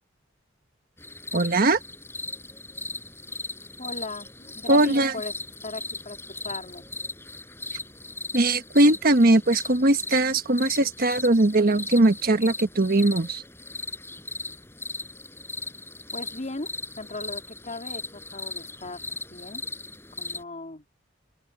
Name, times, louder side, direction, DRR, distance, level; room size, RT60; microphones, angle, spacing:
sound 1, 1.0-20.4, left 2 dB, 15° left, 6.6 m, -38 dB
voice 1, 1.3-1.8 4.7-5.1 8.3-13.4, right 2 dB, 50° right, 1.3 m, -20 dB
voice 2, 3.8-5.3 5.6-6.2 6.4-6.8 16.1-16.7 17.0-19.0 19.3-19.6 20.2-20.8, left 2 dB, 40° left, 3.2 m, -37 dB
open air
head